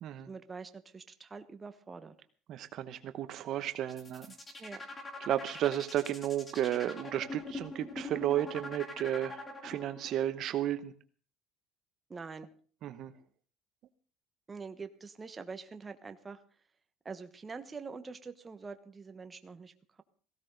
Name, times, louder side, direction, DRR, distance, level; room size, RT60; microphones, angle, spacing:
voice 1, 0.3-2.1 4.6-4.8 12.1-12.5 14.5-16.4 17.0-20.0, right 4 dB, 20° right, 8 dB, 1.2 m, -45 dB
voice 2, 2.5-4.3 5.3-10.9 12.8-13.1, right 12 dB, 50° right, 10 dB, 0.9 m, -33 dB
sound 1, 3.8-10.1, left 2 dB, 15° left, 3.2 m, -43 dB
17.5 x 16.0 x 4.0 m, 0.43 s
cardioid pair, 145°, 0 cm